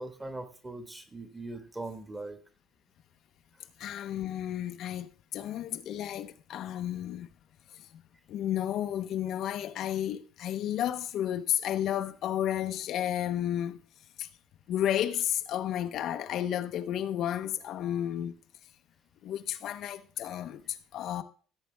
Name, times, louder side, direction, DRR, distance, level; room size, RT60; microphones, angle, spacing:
voice 1, 0.0-2.4, right 2 dB, 15° right, 1.6 m, -40 dB
voice 2, 3.8-7.3 7.8-8.0 8.3-13.8 14.2-14.3 14.7-18.4 19.2-21.2, left 11 dB, 55° left, 0.7 m, -32 dB
16.0 x 8.3 x 3.4 m
cardioid pair, 145°, 0 cm